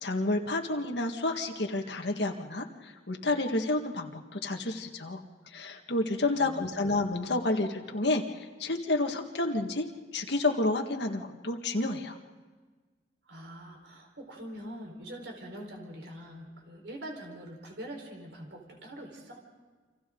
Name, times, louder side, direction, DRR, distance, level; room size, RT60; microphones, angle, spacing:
voice 1, 0.0-5.2 5.5-9.9 10.1-12.2, left 2 dB, 70° left, 3 dB, 1.8 m, -30 dB
voice 2, 6.3-6.9 13.2-19.4, equal, 80° right, 2 dB, 4.5 m, -44 dB
29.0 x 26.0 x 3.9 m, 1.4 s
head